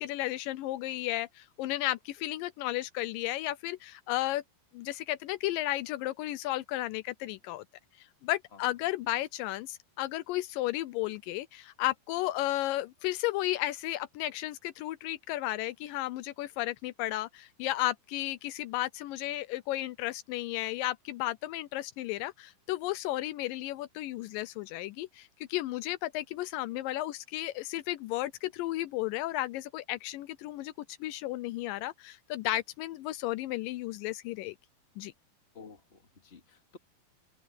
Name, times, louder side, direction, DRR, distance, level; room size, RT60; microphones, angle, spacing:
voice 1, 0.0-4.4 4.7-7.6 8.0-30.7 31.0-34.6 35.0-35.1, left 16 dB, 80° left, 2.2 m, -33 dB
voice 2, 35.5-36.8, left 4 dB, 20° left, 2.1 m, -52 dB
open air
omnidirectional pair, 4.0 m